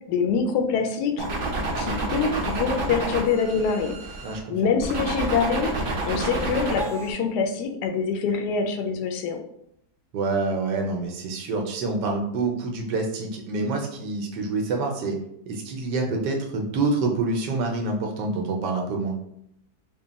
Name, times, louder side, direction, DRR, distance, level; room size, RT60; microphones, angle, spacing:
voice 1, 0.1-1.3 1.8-4.0 4.5-9.4, left 5 dB, 75° left, 5 dB, 1.1 m, -25 dB
sound 1, 1.2-4.4 4.8-7.1, right 2 dB, 55° right, 0.6 m, -29 dB
voice 2, 4.2-4.5 10.1-15.2 15.5-19.1, right 3 dB, 85° right, 1 dB, 1.3 m, -27 dB
3.6 x 2.2 x 3.9 m, 0.75 s
omnidirectional pair, 1.8 m